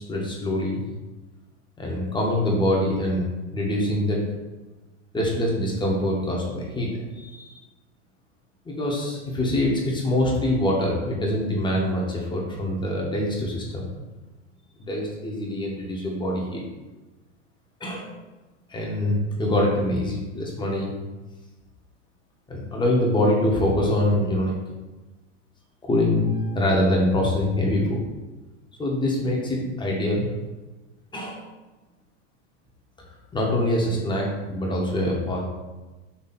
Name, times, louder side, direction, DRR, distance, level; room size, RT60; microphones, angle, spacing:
voice 1, 0.1-0.8 1.8-4.2 5.1-7.5 8.6-13.8 14.8-16.6 17.8-18.1 18.7-20.9 22.5-24.5 25.8-28.0 28.8-30.3 31.1-31.4 33.3-35.4, left 1 dB, 10° left, -2 dB, 1.1 m, -24 dB
4.1 x 2.7 x 4.2 m, 1.2 s
hypercardioid pair, 115°, 37 cm